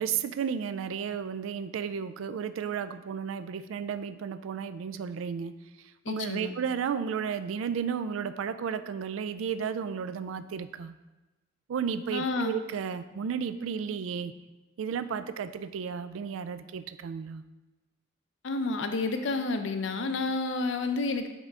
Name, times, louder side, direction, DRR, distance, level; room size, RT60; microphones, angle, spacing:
voice 1, 0.0-5.5 6.1-10.9 11.7-14.3 14.8-17.4, right 7 dB, 85° right, 12 dB, 0.3 m, -33 dB
voice 2, 6.1-6.5 12.1-12.5 18.4-21.3, left 3 dB, 70° left, 7 dB, 0.5 m, -30 dB
5.4 x 3.7 x 4.7 m, 1.1 s
head